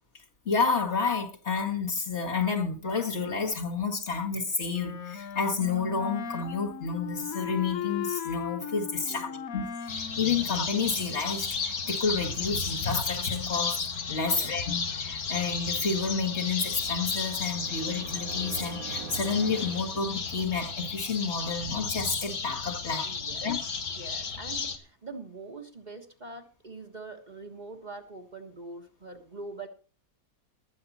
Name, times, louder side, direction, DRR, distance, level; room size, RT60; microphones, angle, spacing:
voice 1, 0.5-13.8 14.1-23.1 23.4-23.6, left 5 dB, 50° left, 2.1 m, -30 dB
Wind instrument woodwind instrument, 4.7-11.3, left 8 dB, 70° left, 1.5 m, -37 dB
voice 2, 9.1-9.5 14.3-14.6 23.0-23.5 23.9-29.7, right 3 dB, 30° right, 1.5 m, -44 dB
sound 1, 9.9-24.8, left 5 dB, 90° left, 2.1 m, -33 dB
sound 2, 16.4-20.7, right 8 dB, 70° right, 1.5 m, -44 dB
20.0 x 7.9 x 4.2 m
omnidirectional pair, 1.5 m